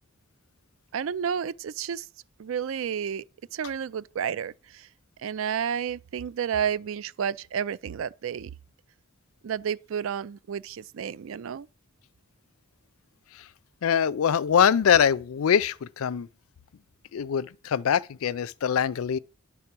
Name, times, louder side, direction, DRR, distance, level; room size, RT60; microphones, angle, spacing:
voice 1, 0.9-2.1 2.4-3.2 3.5-4.9 5.2-8.5 9.4-11.7, right 8 dB, 70° right, 0.4 m, -31 dB
voice 2, 13.8-16.3 17.1-19.2, left 8 dB, 85° left, 0.4 m, -23 dB
10.5 x 3.6 x 6.0 m
head